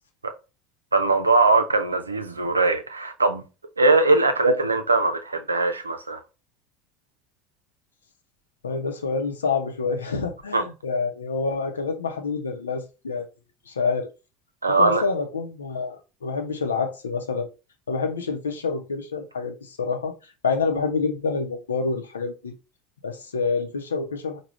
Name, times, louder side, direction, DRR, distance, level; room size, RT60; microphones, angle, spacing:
voice 1, 0.9-3.4 3.8-6.2 10.5-10.6 14.6-15.0, right 3 dB, 85° right, 0.5 m, -20 dB
voice 2, 8.6-13.3 13.7-14.1 14.7-16.0 16.2-17.5 17.9-20.1 20.4-22.5 23.0-24.4, left 4 dB, 75° left, 0.7 m, -27 dB
4.8 x 2.3 x 3.1 m
figure-of-eight pair, 70°, 0 cm